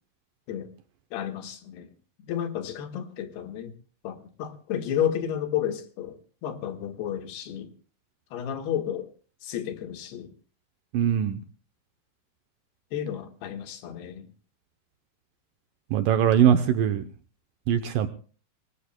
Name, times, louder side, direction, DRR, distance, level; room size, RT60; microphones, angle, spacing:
voice 1, 1.1-1.9 2.2-3.7 4.0-7.7 8.3-9.1 9.4-10.3 12.9-14.3, left 10 dB, 80° left, 3.4 m, -32 dB
voice 2, 10.9-11.4 15.9-17.0 17.7-18.1, right 9 dB, 75° right, 2.1 m, -21 dB
26.5 x 19.5 x 2.2 m
omnidirectional pair, 4.6 m